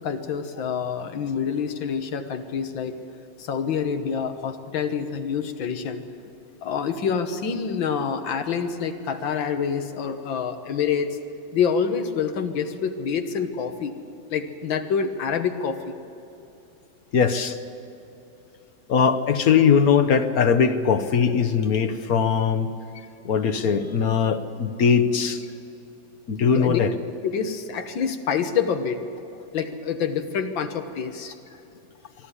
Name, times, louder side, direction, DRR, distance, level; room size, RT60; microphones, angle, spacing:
voice 1, 0.0-3.0 3.4-6.0 6.6-11.2 11.5-13.9 14.3-16.0 26.6-26.8 27.2-29.0 29.5-31.4, left 6 dB, 85° left, 7 dB, 2.0 m, -27 dB
voice 2, 17.1-17.6 18.9-22.7 23.2-25.4 26.3-26.9, left 6 dB, 55° left, 10 dB, 1.2 m, -20 dB
23.0 x 12.5 x 9.9 m, 2.8 s
omnidirectional pair, 2.1 m